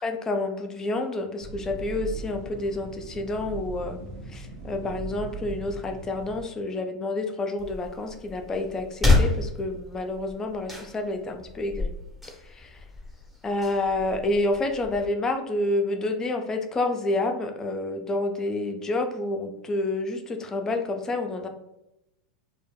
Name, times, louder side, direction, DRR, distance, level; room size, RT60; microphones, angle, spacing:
voice 1, 0.0-4.0 4.3-11.9 12.5-12.8 13.4-21.5, left 2 dB, 20° left, 5 dB, 0.4 m, -29 dB
sound 1, 1.4-6.4, right 4 dB, 50° right, 0.5 m, -39 dB
sound 2, 7.6-15.0, left 3 dB, 5° right, 0.8 m, -29 dB
2.1 x 2.1 x 3.2 m, 0.88 s
hypercardioid pair, 95°, 3 cm